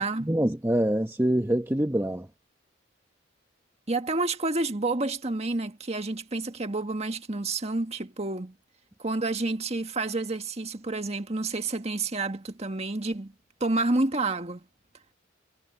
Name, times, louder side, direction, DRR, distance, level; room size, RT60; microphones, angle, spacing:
voice 1, 0.2-2.3, right 1 dB, 15° right, 0.9 m, -25 dB
voice 2, 3.9-8.5 9.0-13.3 13.6-14.6, right 2 dB, 35° right, 1.7 m, -29 dB
head